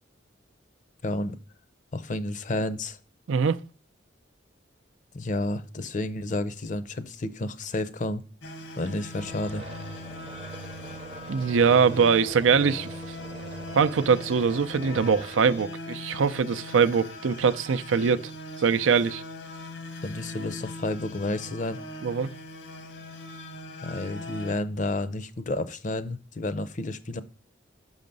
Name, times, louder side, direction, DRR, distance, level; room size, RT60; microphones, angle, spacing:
voice 1, 1.0-1.4 1.9-3.0 5.1-8.2 8.8-9.6 20.0-21.8 23.8-27.2, left 2 dB, 40° left, 0.6 m, -31 dB
voice 2, 3.3-3.6 11.3-12.9 13.7-18.3 18.6-19.2 22.0-22.3, right 6 dB, 90° right, 0.5 m, -22 dB
sound 1, 8.4-24.5, left 2 dB, 80° left, 1.3 m, -41 dB
sound 2, 9.1-15.6, right 2 dB, 30° right, 0.6 m, -43 dB
6.1 x 5.7 x 5.2 m
head